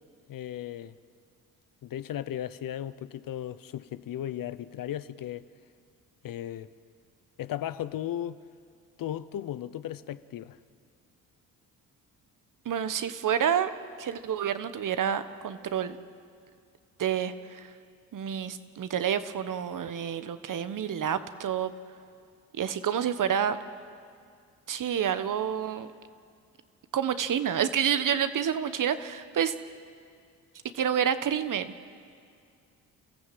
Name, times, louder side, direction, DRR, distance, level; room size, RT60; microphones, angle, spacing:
voice 1, 0.3-0.9 1.8-5.4 6.2-6.7 7.4-8.4 9.0-10.6, left 11 dB, 55° left, 0.9 m, -36 dB
voice 2, 12.6-13.7 14.0-16.0 17.0-17.7 18.1-21.7 22.6-23.6 24.7-25.9 26.9-29.5 30.7-31.7, right 8 dB, 50° right, 1.3 m, -28 dB
28.5 x 14.5 x 7.7 m
supercardioid pair, 55°, 39 cm